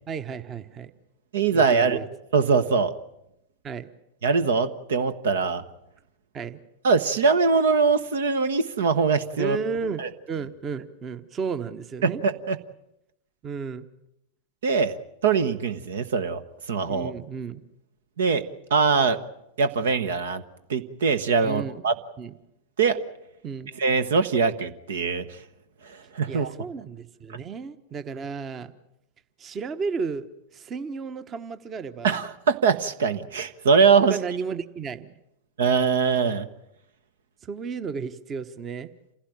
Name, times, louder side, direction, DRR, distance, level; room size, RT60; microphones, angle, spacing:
voice 1, 0.1-0.9 1.5-2.1 3.6-3.9 6.3-6.6 9.4-12.2 13.4-13.9 16.9-17.6 21.4-21.8 22.2-22.3 23.4-23.7 26.3-28.7 29.4-30.3 30.5-32.2 34.1-35.2 37.4-38.9, right 5 dB, 25° right, 12 dB, 1.2 m, -33 dB
voice 2, 1.3-2.0 2.3-2.9 4.2-5.6 6.8-9.6 10.0-10.1 12.0-12.6 14.6-16.4 16.7-17.1 18.2-18.4 18.7-19.2 19.6-20.4 20.7-21.9 22.8-23.0 23.8-25.4 25.8-26.5 27.3-27.4 32.0-34.2 35.6-36.5, right 5 dB, 60° right, 12 dB, 1.2 m, -22 dB
28.0 x 16.5 x 8.9 m, 0.84 s
figure-of-eight pair, 90°, 0 cm